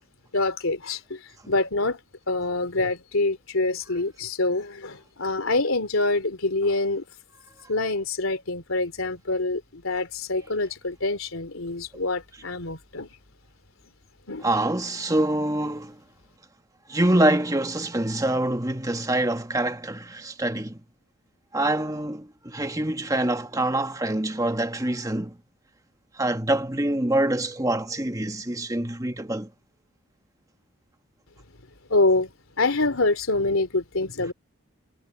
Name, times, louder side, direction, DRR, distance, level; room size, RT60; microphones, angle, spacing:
voice 1, 0.3-1.2 1.5-2.0 2.3-7.0 7.7-13.1 14.3-14.5 31.9-32.3 32.6-34.3, left 2 dB, 85° left, 3.0 m, -25 dB
voice 2, 14.4-16.0 16.9-20.8 21.5-25.4 26.2-29.5, right 1 dB, 15° right, 1.4 m, -25 dB
head